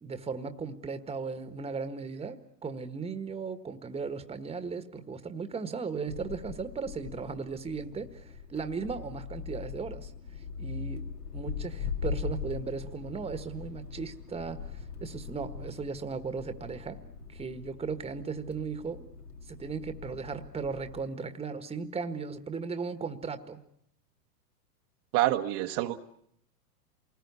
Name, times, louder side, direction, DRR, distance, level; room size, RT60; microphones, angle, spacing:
voice 1, 0.0-10.1 10.6-11.0 11.3-17.0 17.3-19.1 19.5-23.6, right 5 dB, 10° right, 9 dB, 1.5 m, -37 dB
sound 1, 6.1-21.0, left 6 dB, 70° left, 2.8 m, -41 dB
voice 2, 25.1-26.0, right 15 dB, 40° right, 4 dB, 1.3 m, -27 dB
28.0 x 20.0 x 9.6 m, 0.74 s
hypercardioid pair, 105°, 49 cm